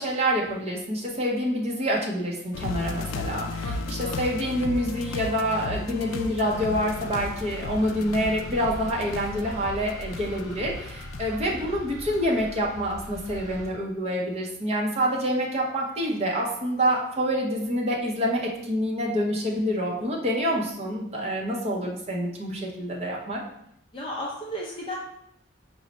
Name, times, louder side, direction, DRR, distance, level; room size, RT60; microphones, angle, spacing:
voice 1, 0.0-23.4, equal, 30° right, -2 dB, 0.7 m, -27 dB
sound 1, 2.5-12.8 13.2-13.3, left 3 dB, 90° left, 0.3 m, -36 dB
sound 2, 6.4-13.7, equal, 5° right, 1.0 m, -41 dB
voice 2, 23.9-24.9, equal, 25° left, -3 dB, 0.5 m, -34 dB
4.5 x 2.1 x 4.0 m, 0.75 s
head